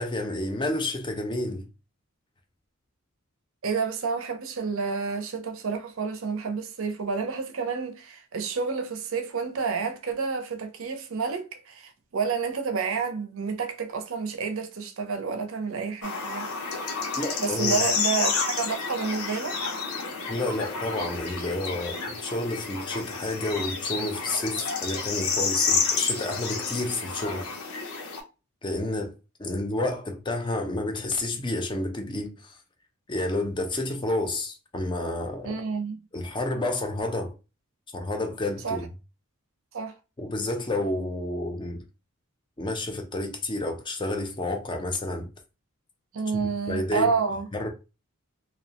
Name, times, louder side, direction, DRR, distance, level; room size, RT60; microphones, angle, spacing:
voice 1, 0.0-1.7 17.2-17.8 20.3-27.6 28.6-29.1 29.4-32.6 33.1-35.6 36.1-37.3 37.9-38.9 40.2-41.8 42.6-45.3 46.3-47.1 47.5-47.7, left 2 dB, 20° left, 0.4 m, -30 dB
voice 2, 3.6-16.5 17.4-19.6 35.4-36.0 38.6-38.8 39.7-40.0 46.1-47.5, right 5 dB, 70° right, 0.5 m, -29 dB
sound 1, 16.0-28.2, left 5 dB, 90° left, 0.7 m, -30 dB
2.7 x 2.1 x 2.8 m
head